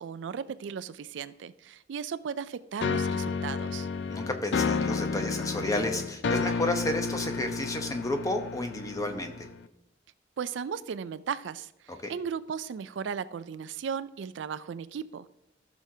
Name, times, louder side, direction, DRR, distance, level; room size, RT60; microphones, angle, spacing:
voice 1, 0.0-3.9 10.4-15.3, right 7 dB, 80° right, 15 dB, 0.4 m, -36 dB
sound 1, 2.8-9.7, left 5 dB, 65° left, 0.4 m, -31 dB
voice 2, 4.1-9.5 11.9-12.1, left 1 dB, 20° left, 5 dB, 0.8 m, -31 dB
14.5 x 6.3 x 2.8 m, 0.83 s
head